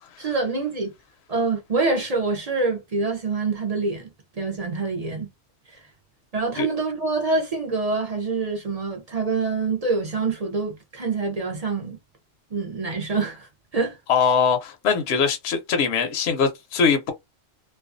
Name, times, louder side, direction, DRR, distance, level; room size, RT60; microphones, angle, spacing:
voice 1, 0.2-0.9 1.3-4.1 4.4-5.3 5.7-5.8 6.3-12.0 12.5-13.5 13.7-14.0, right 3 dB, 45° right, 0.5 m, -26 dB
voice 2, 14.1-17.1, left 6 dB, 65° left, 0.8 m, -21 dB
2.4 x 2.2 x 2.5 m
omnidirectional pair, 1.3 m